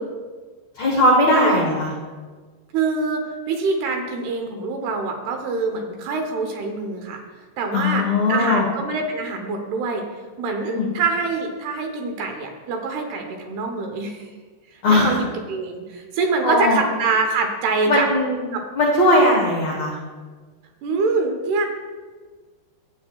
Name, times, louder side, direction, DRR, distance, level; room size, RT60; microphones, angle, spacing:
voice 1, 0.8-1.9 7.7-8.6 10.7-10.9 14.8-15.1 16.4-16.8 17.9-18.4 18.7-20.0, left 1 dB, 75° left, -3 dB, 1.6 m, -18 dB
voice 2, 2.7-7.2 7.6-10.0 10.4-14.3 14.9-18.1 18.5-18.6 20.8-21.7, right 4 dB, 75° right, 3 dB, 2.6 m, -25 dB
14.5 x 8.1 x 2.3 m, 1.4 s
omnidirectional pair, 5.0 m